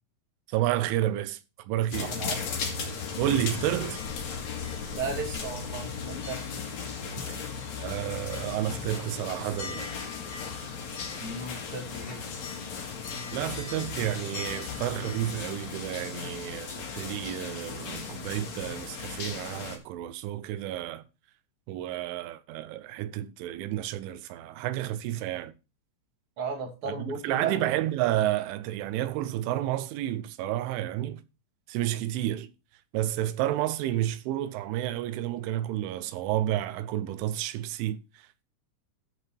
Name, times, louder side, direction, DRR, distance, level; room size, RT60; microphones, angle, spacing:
voice 1, 0.5-2.1 3.2-4.0 7.4-7.5 7.8-9.9 13.3-21.0 21.7-25.5 27.0-31.2 31.7-32.5 32.9-38.4, right 13 dB, 80° right, 3.0 m, -31 dB
sound 1, 1.9-19.8, left 5 dB, 50° left, 2.3 m, -36 dB
voice 2, 2.0-2.4 4.9-6.4 11.2-12.2 26.4-27.6, right 5 dB, 35° right, 2.3 m, -35 dB
14.0 x 4.9 x 4.3 m
omnidirectional pair, 5.8 m